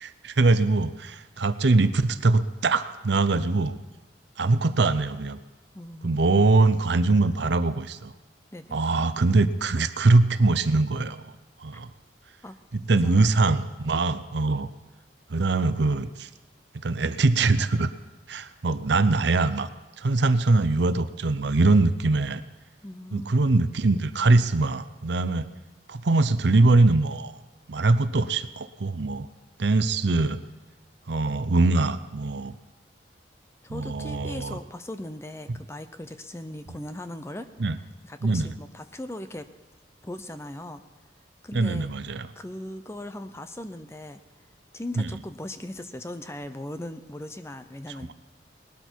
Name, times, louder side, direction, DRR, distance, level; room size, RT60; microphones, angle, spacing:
voice 1, 0.0-3.8 4.4-5.4 6.0-8.1 8.7-11.3 11.6-11.9 12.7-14.7 15.3-16.3 16.8-17.9 18.3-19.7 20.0-22.4 23.1-25.5 25.9-27.3 27.7-29.3 29.6-30.4 31.1-32.5 33.7-34.6 37.6-37.8 38.2-38.5 41.5-42.3 45.0-45.1, right 3 dB, 65° right, 12 dB, 0.6 m, -22 dB
voice 2, 5.7-6.2 8.5-8.8 12.4-12.6 13.2-13.3 22.8-23.3 33.6-37.5 38.0-39.5 40.0-40.8 41.4-41.9 42.4-44.2 44.7-48.1, left 1 dB, 15° left, 10 dB, 0.6 m, -38 dB
19.5 x 12.5 x 4.6 m, 1.1 s
head